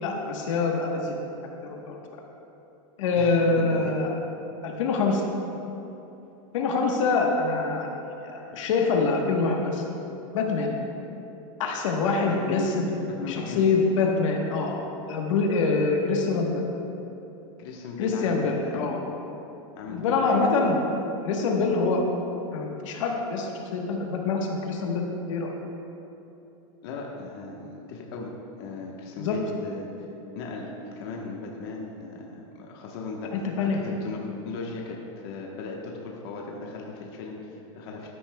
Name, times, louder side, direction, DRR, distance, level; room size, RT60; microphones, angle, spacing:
voice 1, 0.0-1.1 1.6-2.0 3.0-4.1 4.6-5.3 6.5-7.9 8.2-9.8 10.3-10.7 11.6-12.9 13.3-14.8 15.1-16.6 18.0-19.0 19.9-20.8 21.2-22.0 22.5-25.0 25.3-25.5 29.2-29.4 33.3-33.8, left 4 dB, 65° left, 1 dB, 1.2 m, -25 dB
voice 2, 3.2-3.9 12.3-12.7 13.2-13.7 17.6-18.7 19.7-20.5 26.8-28.3 28.6-29.9 30.3-33.3 33.7-34.2 34.4-35.0 35.2-38.1, left 4 dB, 45° left, -1 dB, 1.1 m, -37 dB
13.5 x 9.8 x 2.2 m, 3.0 s
supercardioid pair, 165°, 17 cm